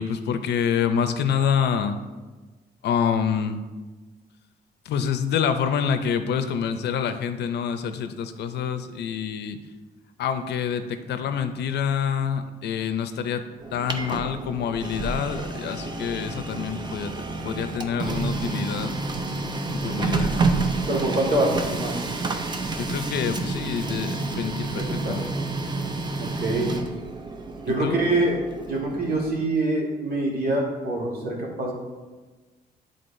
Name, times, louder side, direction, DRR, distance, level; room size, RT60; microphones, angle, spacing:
voice 1, 0.0-2.0 2.8-3.6 4.8-9.6 10.2-13.5 13.7-19.0 19.7-20.4 22.8-25.4 27.7-28.0, left 7 dB, 90° left, 9 dB, 0.5 m, -27 dB
Printer, 13.6-29.4, right 3 dB, 25° right, 0.5 m, -29 dB
voice 2, 20.9-22.1 25.0-25.1 26.2-26.7 27.6-28.4 28.7-31.7, right 2 dB, 60° right, -2 dB, 1.7 m, -25 dB
10.0 x 3.8 x 2.6 m, 1.3 s
wide cardioid pair, 155°, 17 cm